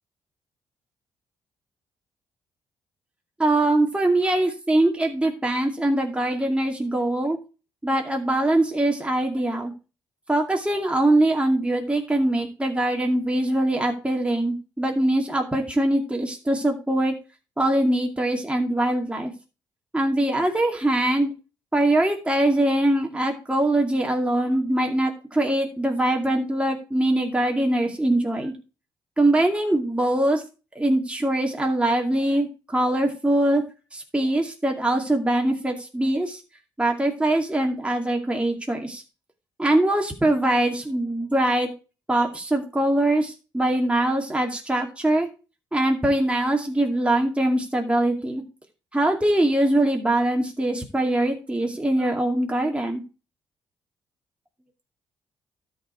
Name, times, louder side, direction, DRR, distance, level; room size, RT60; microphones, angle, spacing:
voice 1, 3.4-7.4 7.8-9.7 10.3-17.1 17.6-19.3 19.9-21.3 21.7-28.5 29.2-30.4 30.8-33.6 33.9-36.4 36.8-39.0 39.6-41.7 42.1-45.3 45.7-48.4 48.9-53.0, right 1 dB, 10° right, 1 dB, 2.3 m, -22 dB
12.5 x 4.9 x 4.6 m, 0.32 s
hypercardioid pair, 45°, 11 cm